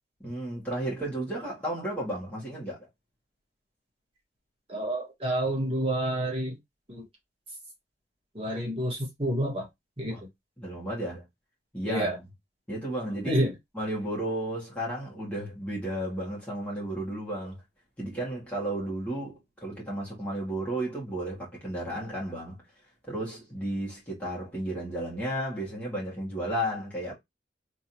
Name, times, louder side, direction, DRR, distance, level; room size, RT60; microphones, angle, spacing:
voice 1, 0.2-2.9 10.1-10.2 10.6-11.2 11.7-12.2 12.7-13.4 13.7-17.6 18.0-22.6 23.1-27.1, right 1 dB, 10° left, 1.9 m, -33 dB
voice 2, 4.7-6.6 6.9-7.0 8.3-9.7 10.0-10.1 11.8-12.2 13.2-13.5, right 1 dB, 35° right, 1.7 m, -28 dB
3.6 x 3.2 x 2.9 m
head